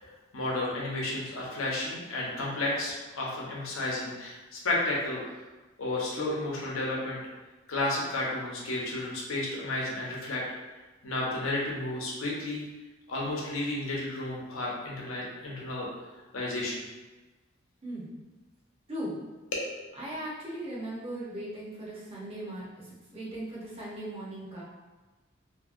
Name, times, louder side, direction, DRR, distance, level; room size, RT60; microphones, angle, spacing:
voice 1, 0.3-5.2 5.8-7.2 7.7-10.4 11.0-12.6 13.1-15.9 16.3-16.8 19.5-19.6, left 2 dB, 80° left, -4 dB, 0.8 m, -32 dB
voice 2, 17.8-18.2 18.9-19.2 20.0-24.6, right 1 dB, 30° right, -6 dB, 0.7 m, -38 dB
2.7 x 2.7 x 2.5 m, 1.2 s
head